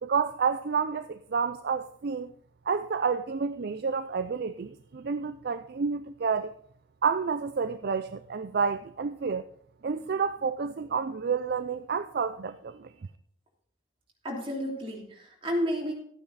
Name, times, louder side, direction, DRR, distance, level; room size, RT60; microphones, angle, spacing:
voice 1, 0.0-2.3 2.7-6.5 7.0-9.4 9.8-12.9, right 5 dB, 50° right, 10 dB, 0.4 m, -29 dB
voice 2, 14.2-15.9, equal, 25° right, -2 dB, 3.0 m, -31 dB
13.0 x 9.1 x 4.1 m, 0.65 s
head